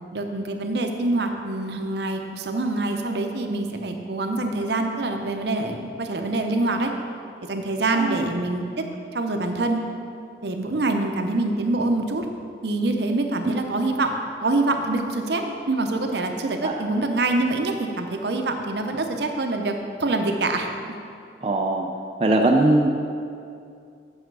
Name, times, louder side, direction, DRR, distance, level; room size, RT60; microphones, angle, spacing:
voice 1, 0.1-6.9 7.5-8.7 9.1-9.8 10.4-12.3 12.6-14.1 14.4-20.7, right 2 dB, 65° right, 4 dB, 0.7 m, -25 dB
voice 2, 7.9-8.2 16.6-16.7 21.4-21.9 22.2-22.9, right 2 dB, 30° right, 1 dB, 0.4 m, -20 dB
8.1 x 6.4 x 4.7 m, 2.4 s
head